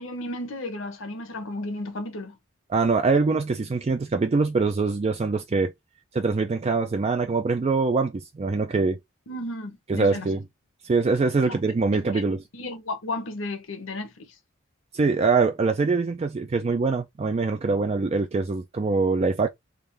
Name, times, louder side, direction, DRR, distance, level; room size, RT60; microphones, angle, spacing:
voice 1, 0.0-2.4 9.3-10.3 11.4-11.6 12.0-14.3, left 2 dB, 65° left, 1.0 m, -34 dB
voice 2, 2.7-5.7 6.1-9.0 9.9-10.4 10.8-12.4 14.9-19.5, right 4 dB, 30° right, 0.3 m, -23 dB
3.7 x 2.5 x 3.3 m
head